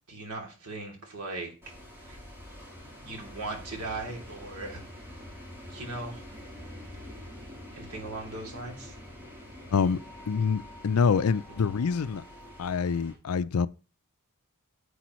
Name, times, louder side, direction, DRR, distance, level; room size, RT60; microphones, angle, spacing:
voice 1, 0.1-1.5 2.0-2.2 3.0-4.8 5.7-6.2 7.7-8.9, right 2 dB, 75° right, 2.9 m, -38 dB
sound 1, 1.6-13.1, left 1 dB, 10° right, 3.7 m, -46 dB
voice 2, 10.3-12.2 12.6-13.7, left 5 dB, 75° left, 0.5 m, -26 dB
10.0 x 8.4 x 3.1 m
head